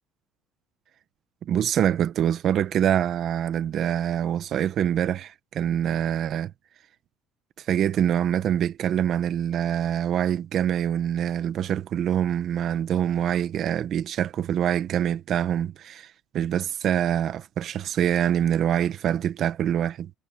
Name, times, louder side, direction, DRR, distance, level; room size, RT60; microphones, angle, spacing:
voice 1, 1.4-6.5 7.7-20.1, right 10 dB, 40° right, 0.9 m, -25 dB
cardioid pair, 170°, 0 cm